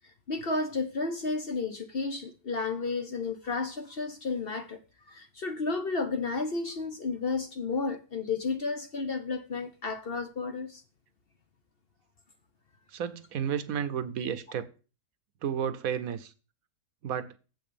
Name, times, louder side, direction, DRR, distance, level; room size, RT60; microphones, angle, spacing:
voice 1, 0.3-4.8 5.1-10.8, left 4 dB, 45° left, 0.9 m, -32 dB
voice 2, 12.9-14.7 15.4-16.3 17.0-17.3, right 8 dB, 65° right, 1.2 m, -32 dB
7.9 x 6.1 x 6.8 m
omnidirectional pair, 1.7 m